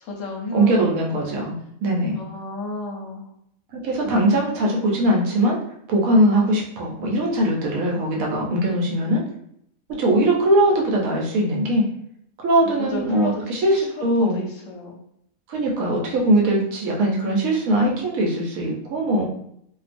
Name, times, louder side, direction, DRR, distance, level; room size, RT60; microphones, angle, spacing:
voice 1, 0.0-1.5 2.2-3.3 12.8-15.0, left 3 dB, 70° left, 0 dB, 0.9 m, -32 dB
voice 2, 0.5-2.2 3.7-5.6 5.9-9.2 10.0-11.9 12.4-14.4 15.5-19.2, right 1 dB, 75° right, -1 dB, 1.0 m, -21 dB
2.4 x 2.3 x 2.5 m, 0.72 s
omnidirectional pair, 1.5 m